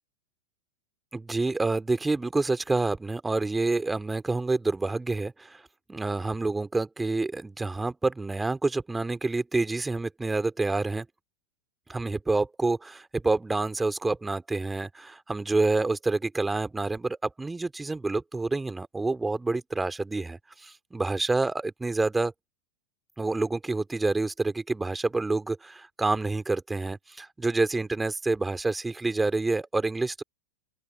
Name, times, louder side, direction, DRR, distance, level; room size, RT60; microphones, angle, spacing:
voice 1, 1.1-5.6 5.9-11.1 11.9-22.3 23.2-30.2, right 3 dB, 10° right, 3.0 m, -28 dB
open air
figure-of-eight pair, 90°, 0 cm